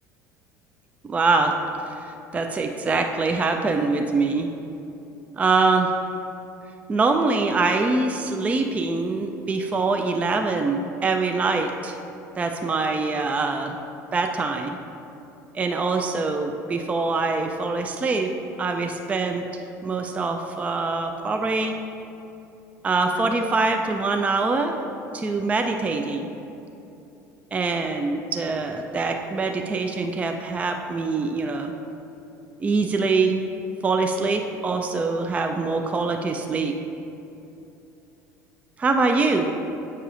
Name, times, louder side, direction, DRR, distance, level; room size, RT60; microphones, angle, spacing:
voice 1, 1.0-1.5 1.9-4.5 5.3-5.9 6.9-12.0 12.4-13.8 14.1-14.8 15.5-18.3 18.6-19.4 19.8-21.8 22.8-24.8 25.1-26.3 27.5-31.7 32.6-33.4 33.8-36.7 38.8-39.5, right 3 dB, 15° right, 4 dB, 0.3 m, -24 dB
8.6 x 5.4 x 2.5 m, 2.8 s
figure-of-eight pair, 65°, 9 cm